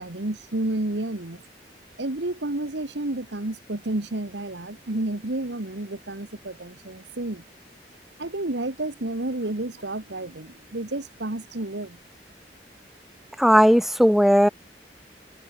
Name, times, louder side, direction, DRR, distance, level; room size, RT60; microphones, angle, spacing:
voice 1, 0.0-1.4 2.0-7.4 8.2-12.0, right 2 dB, 85° right, 1.7 m, -30 dB
voice 2, 13.4-14.5, equal, ahead, 1.4 m, -16 dB
head